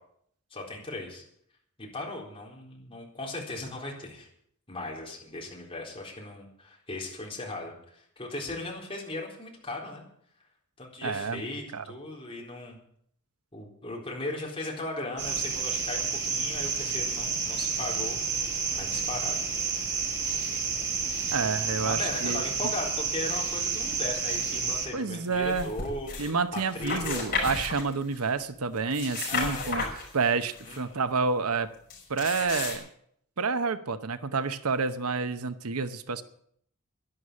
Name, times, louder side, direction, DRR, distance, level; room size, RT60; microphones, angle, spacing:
voice 1, 0.5-1.2 1.8-4.3 4.7-10.1 10.8-12.8 13.5-19.4 21.8-26.1 26.5-27.3 29.3-29.7 30.6-31.0, left 2 dB, 25° left, -2 dB, 4.0 m, -37 dB
voice 2, 11.0-11.4 11.7-11.8 21.3-22.4 24.9-25.7 26.2-29.8 30.1-31.7 32.1-32.8 33.4-36.2, right 4 dB, 80° right, 11 dB, 0.9 m, -29 dB
sound 1, 15.2-24.9, right 5 dB, 55° right, 4.6 m, -30 dB
sound 2, 25.3-26.3 26.6-28.3 28.8-30.8 31.9-32.8, left 4 dB, 40° left, 5.8 m, -33 dB
11.5 x 11.5 x 8.5 m, 0.68 s
head